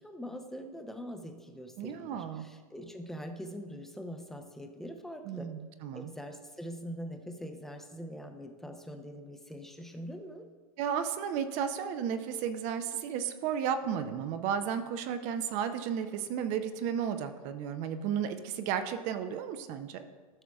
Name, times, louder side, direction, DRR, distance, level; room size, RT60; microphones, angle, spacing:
voice 1, 0.0-5.5 5.9-10.5, equal, ahead, 4 dB, 0.7 m, -43 dB
voice 2, 1.8-2.5 5.3-6.1 10.8-20.0, right 8 dB, 40° right, 9 dB, 0.7 m, -33 dB
13.5 x 6.1 x 2.3 m, 1.5 s
hypercardioid pair, 120°, 19 cm